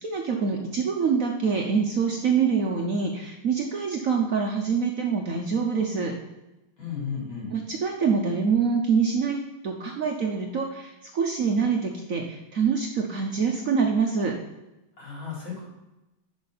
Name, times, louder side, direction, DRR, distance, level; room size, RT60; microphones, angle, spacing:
voice 1, 0.0-6.1 7.5-9.4 9.6-14.3, right 5 dB, 55° right, 1 dB, 1.0 m, -25 dB
voice 2, 6.8-7.5 15.0-15.6, left 6 dB, 75° left, -6 dB, 4.6 m, -34 dB
11.0 x 5.7 x 4.1 m, 0.99 s
omnidirectional pair, 2.2 m